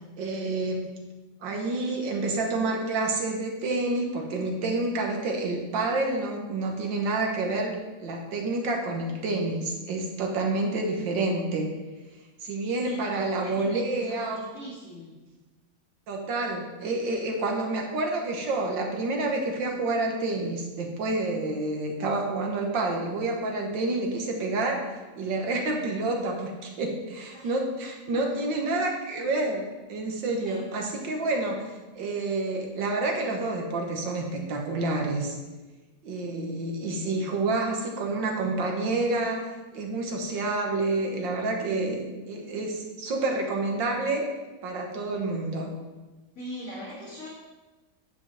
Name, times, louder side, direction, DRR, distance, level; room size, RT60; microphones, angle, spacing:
voice 1, 0.2-0.9 1.4-7.7 8.0-11.7 12.4-14.4 16.1-31.7 31.9-35.3 36.0-39.4 39.7-44.3 44.6-45.7, right 2 dB, 75° right, 1 dB, 1.9 m, -28 dB
voice 2, 12.8-15.1 27.3-27.5 28.1-28.4 30.4-30.7 46.3-47.3, equal, 45° left, -11 dB, 2.8 m, -41 dB
9.2 x 7.8 x 3.4 m, 1.2 s
omnidirectional pair, 2.0 m